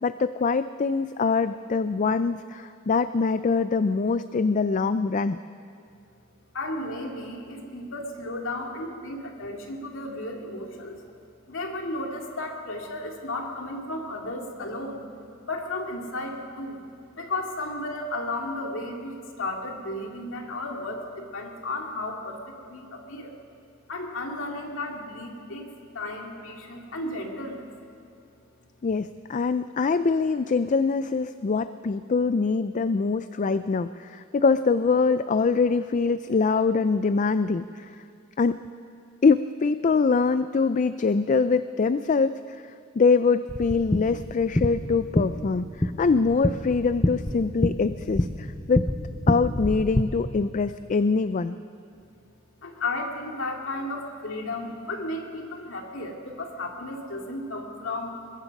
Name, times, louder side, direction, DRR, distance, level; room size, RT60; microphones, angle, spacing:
voice 1, 0.0-5.4 28.8-38.0 38.4-38.6 39.2-42.6 43.0-48.8 49.3-51.6, left 4 dB, 40° left, 13 dB, 0.4 m, -24 dB
voice 2, 6.5-11.0 11.5-15.0 15.5-16.8 17.1-23.4 23.9-27.7 28.6-28.7 51.9-52.0 52.6-58.2, left 2 dB, 65° left, 1 dB, 2.5 m, -34 dB
sound 1, 43.5-50.0, left 1 dB, 15° left, 0.9 m, -27 dB
22.0 x 21.5 x 5.4 m, 2.5 s
head